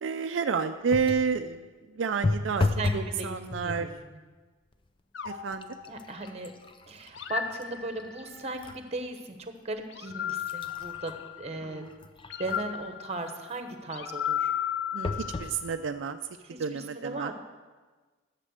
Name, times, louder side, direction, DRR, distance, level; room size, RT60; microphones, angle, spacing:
voice 1, 0.0-1.7 1.9-2.7 2.9-3.9 5.2-5.7 11.6-12.0 14.9-16.2 16.6-17.3, right 5 dB, 75° right, 7 dB, 0.4 m, -30 dB
sound 1, 0.9-1.3 2.2-3.1 3.5-4.0 4.7-4.9 5.3-8.8 9.3-9.4 10.1-12.8 15.0-15.6 16.2-16.3 16.6-16.7, left 2 dB, 25° left, 0.6 m, -34 dB
voice 2, 2.8-3.4 3.6-4.2 5.9-6.5 6.9-11.1 11.4-11.8 12.4-14.5 16.5-17.3, right 2 dB, 35° right, 6 dB, 1.1 m, -37 dB
sound 2, 5.1-6.5 7.1-8.4 9.9-11.6 12.3-15.8, left 9 dB, 65° left, 0.6 m, -35 dB
11.0 x 7.5 x 6.4 m, 1.3 s
head